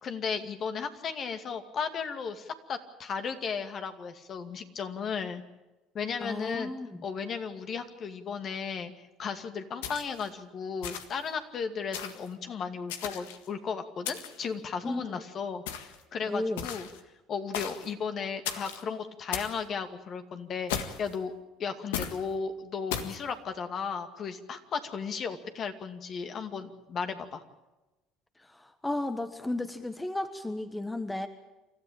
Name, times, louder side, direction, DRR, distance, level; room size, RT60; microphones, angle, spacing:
voice 1, 0.0-5.4 5.9-6.7 7.0-16.9 17.3-21.3 21.6-27.4, left 6 dB, 45° left, 8 dB, 2.3 m, -35 dB
voice 2, 6.2-7.0 14.8-15.2 16.2-16.7 28.4-31.3, left 1 dB, 10° left, 10 dB, 1.4 m, -34 dB
sound 1, 9.8-10.3 10.8-11.3 11.9-12.3 12.9-13.5 14.0-14.5 15.7-16.0 16.6-17.0 17.5-17.9 18.4-18.8 19.3-19.6 20.7-21.1 21.9-22.2 22.9-23.2, left 9 dB, 85° left, 1.7 m, -36 dB
28.5 x 13.5 x 8.8 m, 1.1 s
supercardioid pair, 85°, 0 cm